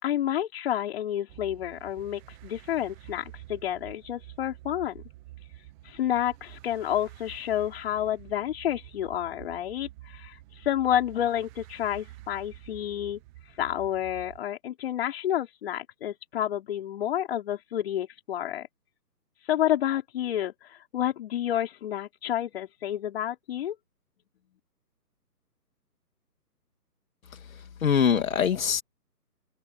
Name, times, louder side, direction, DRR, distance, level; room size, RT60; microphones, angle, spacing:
voice 1, 0.0-5.0 5.8-13.2 13.6-18.7 19.5-23.8, left 11 dB, 35° left, 5.2 m, -30 dB
sound 1, 1.3-14.4, right 16 dB, 5° right, 0.9 m, -48 dB
voice 2, 27.3-28.8, left 7 dB, 55° left, 2.1 m, -24 dB
hypercardioid pair, 155°, 49 cm